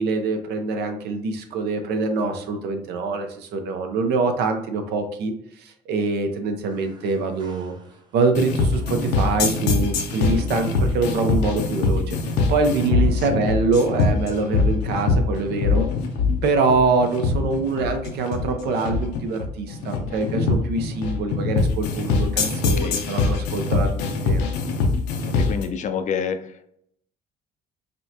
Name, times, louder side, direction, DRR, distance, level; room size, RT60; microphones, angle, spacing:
voice 1, 0.0-7.8 8.1-15.9 16.4-24.5, right 4 dB, 75° right, 6 dB, 0.7 m, -24 dB
Piano Keys, 6.6-8.2 8.7-14.0 14.4-14.5 15.4-15.5, right 2 dB, 25° right, 0.8 m, -42 dB
sound 1, 8.3-25.6, left 4 dB, 85° left, 0.7 m, -23 dB
voice 2, 25.3-26.7, left 7 dB, 45° left, 9 dB, 0.5 m, -28 dB
5.3 x 2.2 x 2.8 m, 0.70 s
cardioid pair, 110°, 17 cm